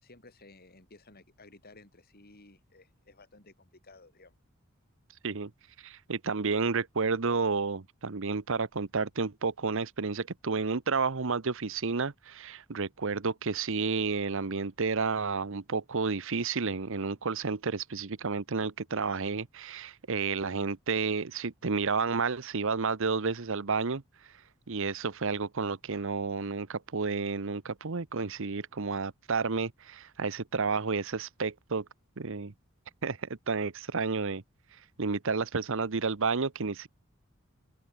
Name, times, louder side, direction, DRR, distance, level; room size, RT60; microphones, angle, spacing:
voice 1, 0.0-4.4, left 2 dB, 45° left, 4.1 m, -55 dB
voice 2, 5.8-24.0 24.7-31.8 32.2-32.5 33.0-34.4 35.0-36.9, right 4 dB, 65° right, 0.9 m, -31 dB
open air
head